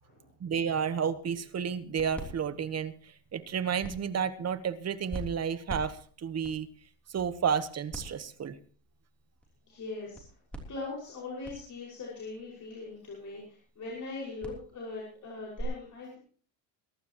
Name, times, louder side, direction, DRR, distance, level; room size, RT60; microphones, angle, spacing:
voice 1, 0.4-6.7 7.1-8.6, right 7 dB, 30° right, 12 dB, 1.2 m, -31 dB
sound 1, 1.2-15.6, right 1 dB, 5° left, 3.3 m, -47 dB
voice 2, 9.7-10.2 10.7-16.2, left 3 dB, 40° left, -4 dB, 5.7 m, -41 dB
22.5 x 12.0 x 3.0 m, 0.43 s
cardioid pair, 125°, 47 cm